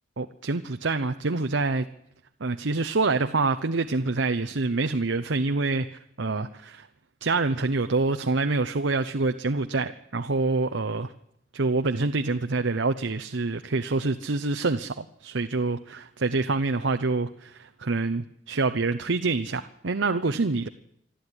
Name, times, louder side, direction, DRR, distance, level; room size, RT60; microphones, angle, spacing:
voice 1, 0.2-1.9 2.4-6.9 7.2-11.1 11.5-20.7, right 3 dB, 85° right, 9 dB, 0.8 m, -26 dB
25.5 x 13.0 x 9.9 m, 0.79 s
head